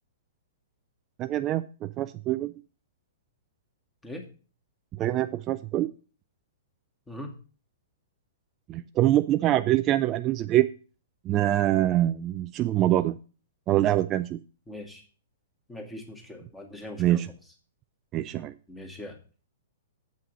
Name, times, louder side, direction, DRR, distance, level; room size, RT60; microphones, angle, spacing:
voice 1, 1.2-2.5 5.0-5.9 8.7-10.7 11.2-13.2 13.7-14.4 17.0-17.3 18.1-18.6, right 13 dB, 25° right, 10 dB, 0.4 m, -24 dB
voice 2, 14.7-15.0 15.7-17.2 18.7-19.2, left 1 dB, 5° left, 2 dB, 1.9 m, -41 dB
7.7 x 5.6 x 6.9 m, 0.36 s
figure-of-eight pair, 110°, 0 cm